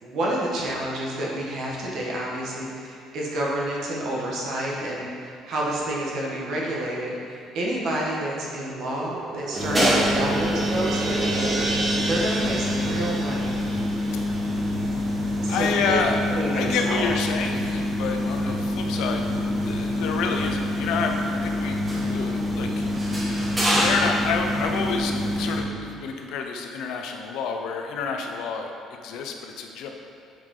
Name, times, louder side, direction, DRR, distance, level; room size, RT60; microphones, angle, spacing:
voice 1, 0.0-11.5 12.1-13.5 15.4-16.0 16.4-17.0, right 1 dB, 60° right, -3 dB, 1.3 m, -29 dB
sound 1, 8.7-15.3, right 3 dB, 40° right, 0.6 m, -31 dB
sound 2, 9.5-25.6, left 1 dB, 20° right, 1.5 m, -26 dB
voice 2, 15.5-16.3 16.5-19.3 19.6-21.8 22.1-22.8 23.8-28.7 29.0-29.9, left 5 dB, 75° left, 3 dB, 0.6 m, -29 dB
7.5 x 4.9 x 3.8 m, 2.4 s
cardioid pair, 135°, 0 cm